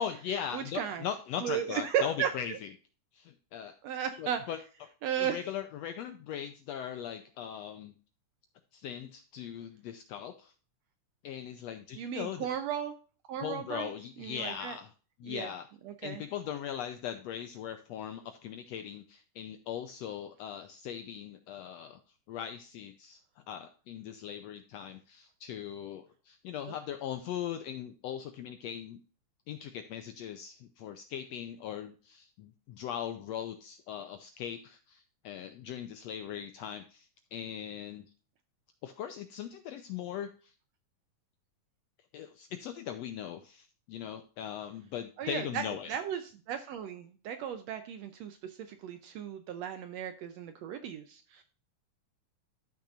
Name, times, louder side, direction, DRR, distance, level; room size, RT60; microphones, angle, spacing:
voice 1, 0.0-2.5 3.1-3.8 4.2-4.9 5.2-7.9 8.7-10.5 11.2-12.5 13.4-14.9 15.2-15.7 16.0-22.0 22.3-29.0 29.5-38.0 38.8-40.5 42.1-45.9, left 9 dB, 80° left, 8 dB, 1.5 m, -39 dB
voice 2, 0.5-1.0 1.4-2.6 3.8-4.4 5.0-5.4 11.9-12.9 13.3-13.9 14.2-14.8 15.2-15.5 15.9-16.2 26.7-26.8 45.2-51.4, right 9 dB, 75° right, 9 dB, 1.6 m, -35 dB
13.0 x 6.1 x 2.5 m, 0.37 s
omnidirectional pair, 3.6 m